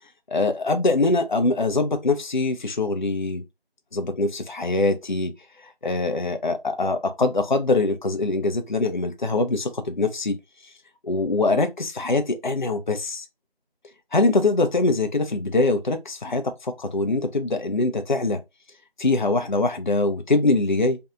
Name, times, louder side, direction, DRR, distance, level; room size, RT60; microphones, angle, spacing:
voice 1, 0.3-3.4 3.9-5.3 5.6-10.4 11.0-13.3 14.1-18.4 19.0-21.0, left 2 dB, 50° left, 0.5 m, -23 dB
2.6 x 2.2 x 2.4 m
figure-of-eight pair, 175°, 30 cm